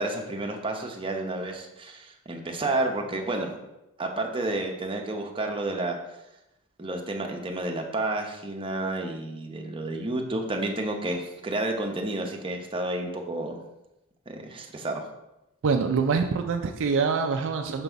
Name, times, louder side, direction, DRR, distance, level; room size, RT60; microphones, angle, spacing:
voice 1, 0.0-3.6 4.0-6.0 6.8-13.6 14.3-15.1, right 2 dB, 25° right, 2 dB, 0.7 m, -30 dB
voice 2, 15.6-17.8, right 5 dB, 60° right, 5 dB, 0.4 m, -25 dB
6.1 x 4.0 x 4.5 m, 0.94 s
head